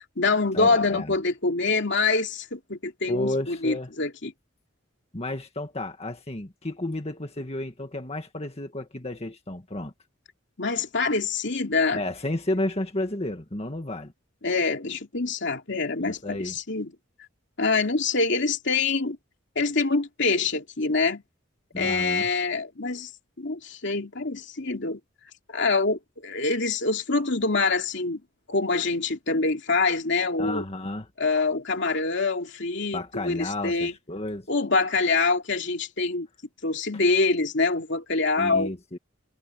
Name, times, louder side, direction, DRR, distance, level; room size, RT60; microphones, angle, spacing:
voice 1, 0.0-4.3 10.6-12.0 14.4-16.9 17.6-19.2 19.5-21.2 21.8-23.1 23.4-25.0 25.5-28.2 28.5-30.6 31.2-33.9 34.5-36.3 36.6-38.7, left 3 dB, 65° left, 2.8 m, -25 dB
voice 2, 0.5-1.1 3.1-3.9 5.1-9.9 11.9-14.1 16.0-16.5 21.7-22.3 30.4-31.1 32.9-34.5 38.4-39.0, left 1 dB, 30° left, 2.0 m, -32 dB
head